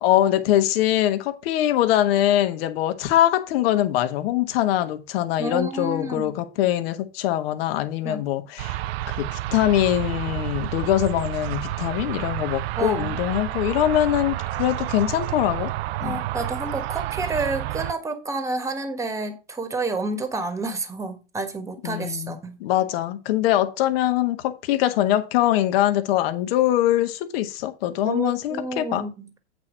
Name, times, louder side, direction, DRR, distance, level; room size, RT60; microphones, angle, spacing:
voice 1, 0.0-8.8 9.1-15.7 16.0-16.2 21.8-29.0, left 13 dB, 55° left, 1.4 m, -23 dB
voice 2, 5.4-6.3 8.0-8.2 12.8-13.1 16.0-22.6 28.0-29.4, right 2 dB, 10° right, 1.4 m, -29 dB
sound 1, 8.6-17.9, right 15 dB, 60° right, 0.5 m, -30 dB
8.5 x 4.5 x 6.1 m
hypercardioid pair, 125°, 36 cm